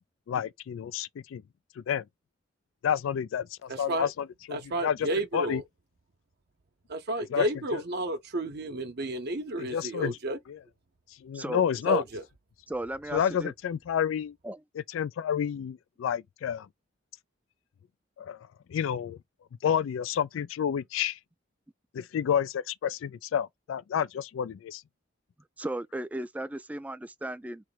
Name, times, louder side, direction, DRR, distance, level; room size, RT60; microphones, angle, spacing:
voice 1, 0.3-1.4 1.8-2.0 2.8-5.1 5.3-5.6 7.3-7.5 7.7-7.8 9.6-10.2 10.5-10.6 11.2-12.0 13.1-14.4 14.9-16.7 18.2-19.2 19.6-21.2 21.9-24.8, left 8 dB, 90° left, 0.3 m, -30 dB
voice 2, 3.7-4.1 4.5-5.6 6.9-10.4 11.9-12.2, right 1 dB, 55° right, 0.7 m, -32 dB
voice 3, 11.3-12.0 12.7-13.5 14.4-14.6 25.6-27.6, right 1 dB, 10° right, 0.4 m, -36 dB
3.2 x 3.0 x 4.5 m
head